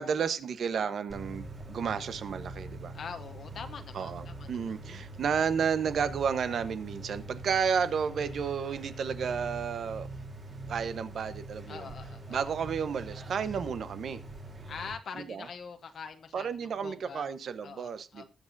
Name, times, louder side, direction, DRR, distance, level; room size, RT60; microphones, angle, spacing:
voice 1, 0.0-2.9 3.9-10.1 10.7-11.9 12.3-14.2 15.2-15.5 16.3-18.2, right 6 dB, 60° right, 1.1 m, -32 dB
sound 1, 1.1-14.9, right 2 dB, 35° right, 3.4 m, -43 dB
voice 2, 2.9-4.7 11.7-12.5 14.7-17.2 17.6-18.2, left 6 dB, 55° left, 0.9 m, -44 dB
20.5 x 7.6 x 2.7 m
wide cardioid pair, 155°, 0 cm